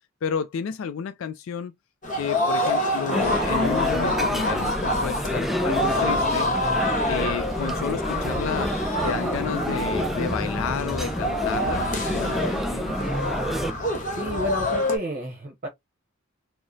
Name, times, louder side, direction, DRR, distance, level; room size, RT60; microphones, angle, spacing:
voice 1, 0.2-1.7 2.1-6.5 7.1-8.8 9.0-13.0, left 6 dB, 75° left, 0.3 m, -31 dB
Ueno Park Tokyo-Baseball Warm Up, 2.0-15.0, left 1 dB, 40° left, 1.1 m, -27 dB
sound 1, 3.1-13.7, equal, ahead, 0.4 m, -28 dB
voice 2, 14.1-15.7, right 1 dB, 40° right, 0.9 m, -30 dB
4.7 x 2.0 x 2.7 m
head